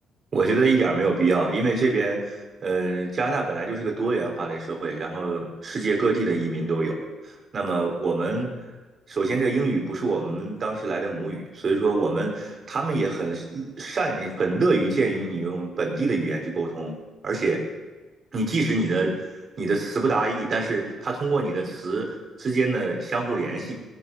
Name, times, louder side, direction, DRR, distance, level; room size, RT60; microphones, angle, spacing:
voice 1, 0.3-7.0 7.2-8.5 9.1-17.0 17.2-17.6 18.3-19.1 19.6-22.1 22.4-23.7, right 3 dB, 45° right, 1 dB, 4.6 m, -25 dB
19.5 x 11.0 x 5.7 m, 1.3 s
cardioid pair, 90°, 0 cm